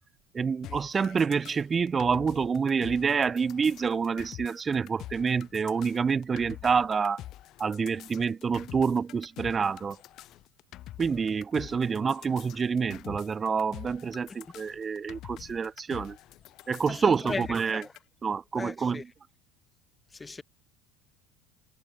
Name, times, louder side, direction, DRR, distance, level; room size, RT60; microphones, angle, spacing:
voice 1, 0.3-7.2 7.6-10.0 11.0-16.2 16.7-17.9 18.2-19.1, right 5 dB, 25° right, 0.4 m, -27 dB
sound 1, 0.6-18.0, left 14 dB, 55° left, 4.9 m, -46 dB
voice 2, 16.9-17.4 17.7-17.9 18.5-19.0 20.1-20.4, left 3 dB, 15° left, 1.8 m, -36 dB
supercardioid pair, 105°, 0 cm